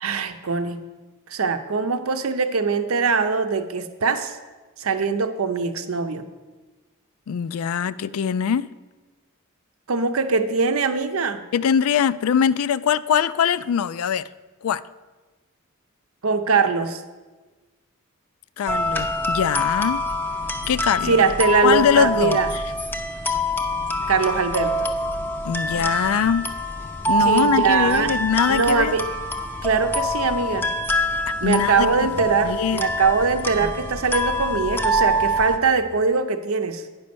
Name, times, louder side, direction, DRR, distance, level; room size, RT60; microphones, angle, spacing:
voice 1, 0.0-0.8 1.3-4.4 4.8-6.3 9.9-11.4 16.2-17.0 21.1-22.5 24.1-24.9 27.2-28.1 28.5-29.0 29.6-30.7 31.4-36.8, right 4 dB, 80° right, 0.7 m, -22 dB
voice 2, 7.3-8.7 11.5-14.3 14.6-14.8 18.6-20.0 20.7-21.2 21.6-22.6 25.4-26.5 27.1-29.0 31.4-32.1 32.4-32.9, left 7 dB, 80° left, 0.4 m, -22 dB
sound 1, 18.7-35.6, equal, 10° left, 0.5 m, -25 dB
9.7 x 5.2 x 6.8 m
head